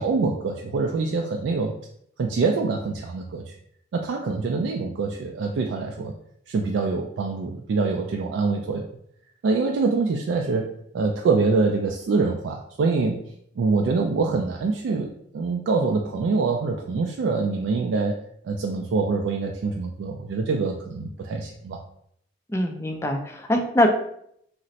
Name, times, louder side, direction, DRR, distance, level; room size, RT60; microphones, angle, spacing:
voice 1, 0.0-1.7 2.2-3.6 3.9-6.1 6.5-8.9 9.4-10.7 10.9-13.2 13.6-18.2 18.4-21.8, right 4 dB, 80° right, 2 dB, 0.3 m, -25 dB
voice 2, 22.5-23.9, left 1 dB, 15° left, 3 dB, 0.3 m, -23 dB
2.5 x 2.0 x 3.9 m, 0.70 s
head